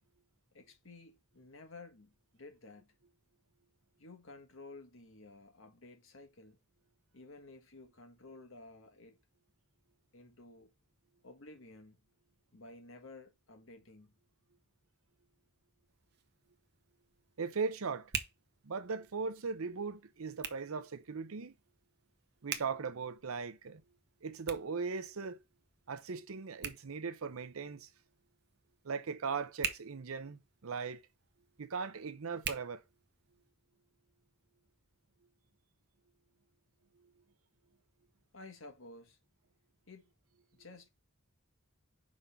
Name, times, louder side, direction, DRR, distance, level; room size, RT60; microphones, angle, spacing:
voice 1, 0.5-2.9 4.0-6.6 7.1-9.2 10.1-10.7 11.2-12.0 12.5-14.1 38.3-39.2 39.9-40.1 40.5-40.9, left 2 dB, 65° left, 1.5 m, -53 dB
Hands, 15.9-33.5, right 8 dB, 50° right, 0.8 m, -47 dB
voice 2, 17.4-18.1 18.6-21.5 22.4-23.8 24.2-25.4 25.9-27.9 28.8-31.0 31.6-32.8, right 5 dB, 80° right, 0.7 m, -38 dB
5.3 x 3.8 x 5.6 m
head